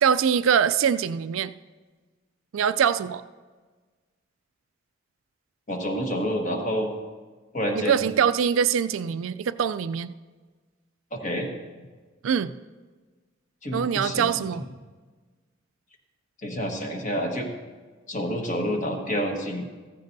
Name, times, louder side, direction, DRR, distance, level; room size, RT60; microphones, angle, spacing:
voice 1, 0.0-1.5 2.5-3.2 7.8-10.1 12.2-12.5 13.7-14.6, right 7 dB, 80° right, 14 dB, 0.4 m, -23 dB
voice 2, 5.7-6.9 7.5-8.1 11.1-11.5 13.6-14.4 16.4-17.5 18.1-19.7, equal, 40° left, 2 dB, 1.4 m, -28 dB
15.0 x 14.5 x 2.7 m, 1.4 s
head